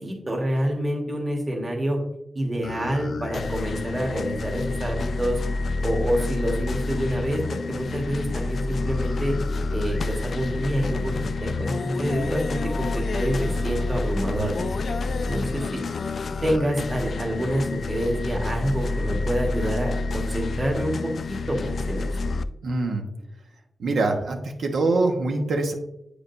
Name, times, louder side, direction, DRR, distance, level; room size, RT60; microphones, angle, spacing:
voice 1, 0.0-2.0 2.3-5.4 5.8-7.4 7.7-9.3 9.7-14.7 15.2-15.8 16.4-22.1, equal, 30° right, -1 dB, 1.5 m, -27 dB
sound 1, 2.6-22.4, left 3 dB, 65° left, 0.3 m, -28 dB
voice 2, 14.3-14.8 22.6-23.0 23.8-25.7, right 2 dB, 80° right, 3 dB, 1.1 m, -24 dB
8.6 x 5.0 x 2.6 m, 0.81 s
wide cardioid pair, 105°, 0 cm